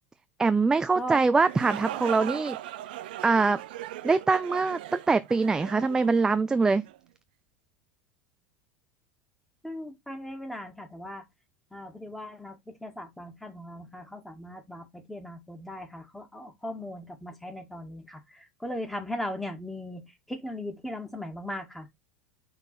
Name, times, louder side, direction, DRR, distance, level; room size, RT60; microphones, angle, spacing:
voice 1, 0.4-2.6 3.2-3.6 4.0-6.8, right 4 dB, 10° right, 0.4 m, -23 dB
sound 1, 1.3-7.0, right 13 dB, 65° right, 0.6 m, -39 dB
voice 2, 9.6-11.3 11.7-21.9, left 1 dB, 5° left, 2.0 m, -38 dB
5.9 x 4.0 x 4.1 m
hypercardioid pair, 85°, 5 cm